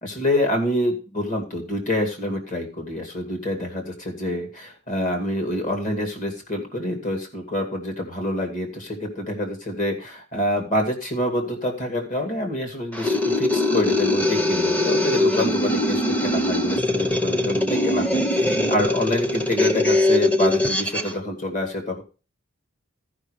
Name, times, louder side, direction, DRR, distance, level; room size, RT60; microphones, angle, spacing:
voice 1, 0.0-22.0, left 1 dB, 40° left, 3 dB, 2.4 m, -26 dB
sound 1, 12.9-21.1, left 1 dB, 10° left, 0.8 m, -22 dB
13.5 x 5.4 x 5.0 m, 0.34 s
head